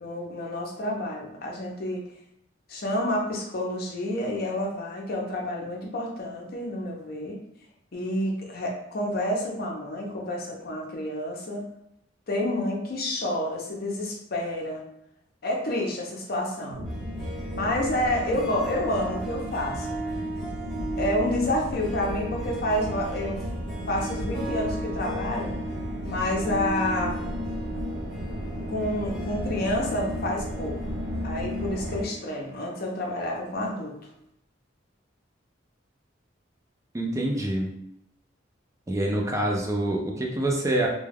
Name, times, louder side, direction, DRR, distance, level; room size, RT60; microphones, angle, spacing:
voice 1, 0.0-2.0 2.7-7.4 7.9-11.7 12.3-14.8 15.4-16.8 17.6-20.0 21.0-23.4 23.9-25.5 26.0-27.2 28.7-30.8 31.2-34.0, left 1 dB, 50° left, -1 dB, 0.6 m, -29 dB
sound 1, 16.7-32.0, equal, 85° right, 0.5 m, -34 dB
Harp, 16.9-33.6, right 2 dB, ahead, 1.0 m, -38 dB
voice 2, 36.9-37.7 38.9-40.9, right 1 dB, 15° right, 0 dB, 0.4 m, -26 dB
2.3 x 2.2 x 3.3 m, 0.77 s
head